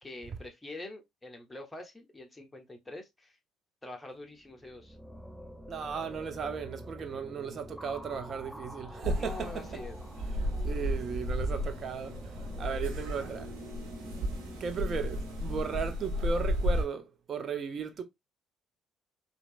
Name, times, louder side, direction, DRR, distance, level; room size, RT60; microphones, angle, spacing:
voice 1, 0.0-3.4 3.8-5.0 9.2-10.0, left 2 dB, 10° left, 1.1 m, -45 dB
sound 1, 4.4-15.9, equal, 5° right, 0.6 m, -46 dB
voice 2, 5.7-9.8 10.6-12.2 12.6-13.5 14.6-18.0, right 6 dB, 50° right, 0.8 m, -36 dB
sound 2, 9.0-16.8, equal, 75° right, 1.4 m, -33 dB
4.4 x 2.7 x 2.5 m
hypercardioid pair, 55°, 0 cm